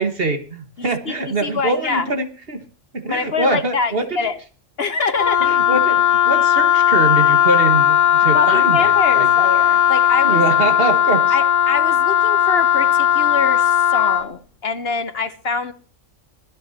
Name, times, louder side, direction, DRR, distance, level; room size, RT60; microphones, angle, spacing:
voice 1, 0.0-2.6 2.9-4.1 5.4-9.3 10.2-11.3, right 3 dB, 45° right, 7 dB, 1.8 m, -23 dB
voice 2, 0.8-2.1 3.1-4.4 4.8-5.5 8.3-10.4 11.3-15.7, left 4 dB, 55° left, 11 dB, 1.1 m, -25 dB
Wind instrument woodwind instrument, 5.2-14.3, left 9 dB, 75° left, 1.5 m, -16 dB
24.0 x 9.7 x 2.8 m, 0.39 s
omnidirectional pair, 1.3 m